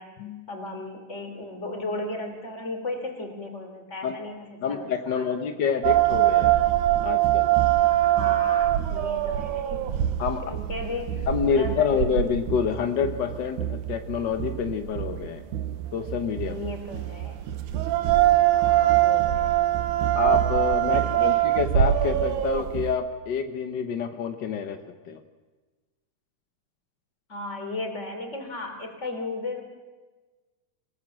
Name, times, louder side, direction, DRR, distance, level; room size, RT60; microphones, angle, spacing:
voice 1, 0.5-5.5 8.0-10.0 10.5-12.2 16.4-17.4 18.5-19.6 20.8-21.4 27.3-29.6, left 2 dB, 20° left, 5 dB, 3.3 m, -35 dB
voice 2, 4.6-6.6 7.0-7.5 10.2-10.4 11.3-15.4 15.9-16.5 20.1-24.8 25.1-25.2, left 7 dB, 70° left, 7 dB, 1.0 m, -27 dB
sound 1, 5.8-22.9, right 13 dB, 80° right, 2.5 m, -23 dB
26.5 x 18.0 x 7.5 m, 1.3 s
omnidirectional pair, 3.5 m